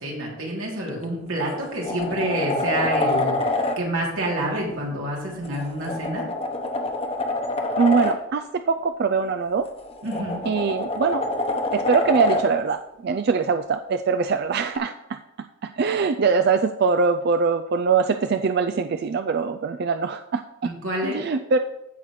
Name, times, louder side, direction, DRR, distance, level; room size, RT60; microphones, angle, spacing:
voice 1, 0.0-6.3 10.0-10.4 20.6-21.2, right 1 dB, 90° right, -3 dB, 2.9 m, -28 dB
sound 1, 0.9-1.0 1.5-3.8 5.4-8.2 9.7-12.5 14.8-14.9, left 2 dB, 30° left, 0.9 m, -26 dB
voice 2, 7.8-9.7 10.5-11.2 11.7-14.9 15.6-20.7 21.0-21.6, right 5 dB, 50° right, 7 dB, 0.3 m, -22 dB
15.5 x 5.7 x 3.2 m, 0.92 s
head